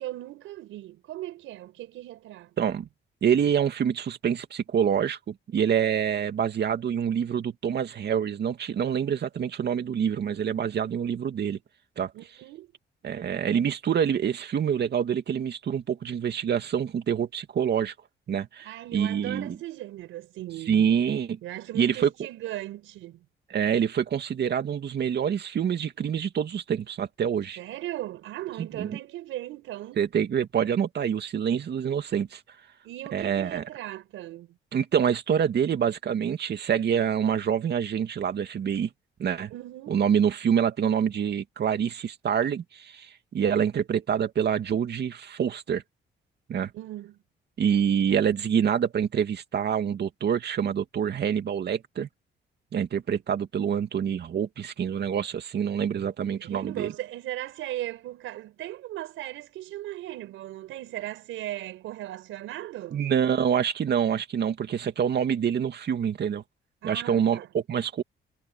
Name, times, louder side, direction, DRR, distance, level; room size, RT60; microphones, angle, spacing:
voice 1, 0.0-2.7 12.1-12.7 18.6-20.9 21.4-23.2 27.6-30.0 32.8-34.5 39.5-40.0 46.7-47.2 56.4-63.0 66.8-67.5, right 14 dB, 90° right, 5.3 m, -38 dB
voice 2, 2.6-2.9 3.2-11.6 12.0-12.1 13.0-17.9 18.3-19.6 20.7-21.4 21.7-22.1 23.5-27.6 28.6-29.0 30.0-32.4 33.1-33.6 34.7-38.9 39.2-39.5 39.9-45.8 46.5-46.7 47.6-52.1 52.7-56.9 62.9-66.4 66.8-68.0, right 8 dB, 55° right, 2.5 m, -26 dB
cardioid pair, 90°, 20 cm